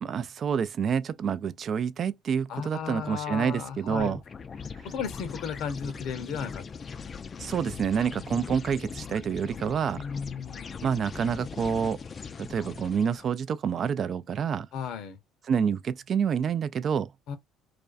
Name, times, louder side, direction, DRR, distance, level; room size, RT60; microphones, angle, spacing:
voice 1, 0.0-4.2 4.8-4.9 7.4-10.0 10.8-12.0 12.4-14.7 15.5-17.1, right 7 dB, 45° right, 0.3 m, -28 dB
voice 2, 2.5-4.2 4.8-6.6 7.4-7.5 9.9-10.7 14.7-15.2 17.3-17.4, left 7 dB, 65° left, 0.7 m, -35 dB
sound 1, 3.9-13.3, left 6 dB, 35° left, 0.3 m, -40 dB
2.4 x 2.2 x 2.4 m
supercardioid pair, 85°, 0 cm